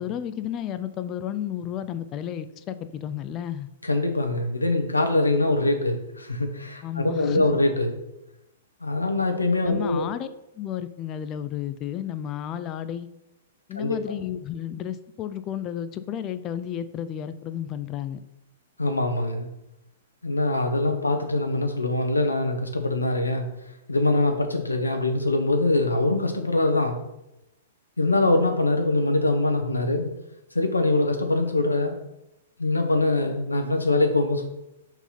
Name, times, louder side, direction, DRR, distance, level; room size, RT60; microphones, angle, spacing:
voice 1, 0.0-3.7 6.8-7.6 9.6-10.3 10.6-13.1 13.7-18.2, left 10 dB, 30° left, 12 dB, 0.4 m, -32 dB
voice 2, 3.8-8.0 8.8-10.1 13.7-14.0 18.8-19.5 20.2-23.5 23.9-27.0 28.0-30.1 30.5-32.0 32.6-34.5, left 2 dB, 85° left, 5 dB, 1.0 m, -23 dB
5.6 x 4.5 x 5.6 m, 0.91 s
figure-of-eight pair, 110°, 0 cm